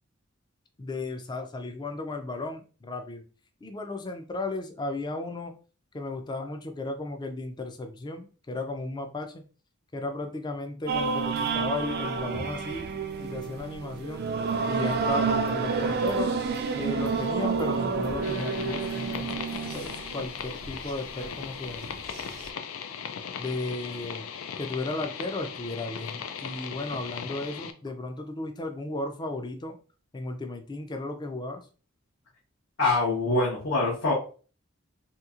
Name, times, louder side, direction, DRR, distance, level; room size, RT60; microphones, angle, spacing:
voice 1, 0.8-3.2 3.6-5.5 5.9-9.4 9.9-14.2 14.7-16.3 16.7-19.4 19.7-21.9 23.4-24.3 24.6-29.8 30.1-31.6, left 2 dB, 20° left, 6 dB, 0.4 m, -35 dB
sound 1, 10.9-20.9 21.2-21.4 21.8-22.5, right 5 dB, 50° right, 0.4 m, -29 dB
sound 2, 18.2-27.7, left 7 dB, 90° left, 0.4 m, -38 dB
voice 2, 32.8-34.1, left 2 dB, 70° left, -6 dB, 1.0 m, -24 dB
2.9 x 2.7 x 2.4 m, 0.37 s
head